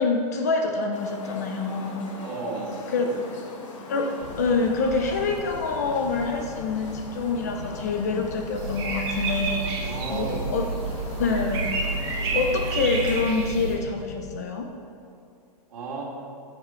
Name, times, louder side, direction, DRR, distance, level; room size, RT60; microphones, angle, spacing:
voice 1, 0.0-2.1 2.9-3.0 3.9-10.7 11.2-11.8 12.3-14.7, left 4 dB, 25° left, 4 dB, 0.4 m, -26 dB
sound 1, 0.9-13.2, left 3 dB, 50° left, 1.3 m, -41 dB
voice 2, 2.2-3.2 3.8-4.0 9.8-10.4 10.7-10.8 15.7-16.0, right 3 dB, 60° right, -1 dB, 2.2 m, -34 dB
sound 2, 4.2-14.4, left 6 dB, 75° left, 0.7 m, -41 dB
sound 3, 8.5-13.7, right 4 dB, 40° right, 1.8 m, -29 dB
13.5 x 6.8 x 4.4 m, 2.5 s
hypercardioid pair, 180°, 20 cm